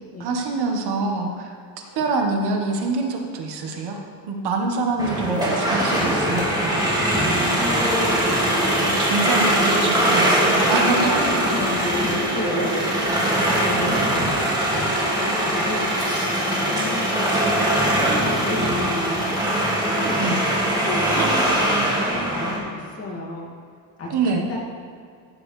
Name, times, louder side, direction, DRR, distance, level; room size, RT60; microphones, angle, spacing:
voice 1, 0.2-1.5 1.9-4.0 4.3-7.0 8.8-11.1 20.2-20.4 21.2-21.3 24.1-24.5, right 3 dB, 65° right, 2 dB, 1.5 m, -25 dB
sound 1, 5.0-22.6, right 1 dB, 10° right, 2.2 m, -21 dB
voice 2, 5.4-6.3 7.4-8.3 9.4-11.7 12.0-17.4 17.8-19.4 19.6-23.5 24.0-24.6, left 1 dB, 35° left, -4 dB, 2.3 m, -33 dB
14.5 x 8.8 x 3.3 m, 2.3 s
cardioid pair, 155°, 42 cm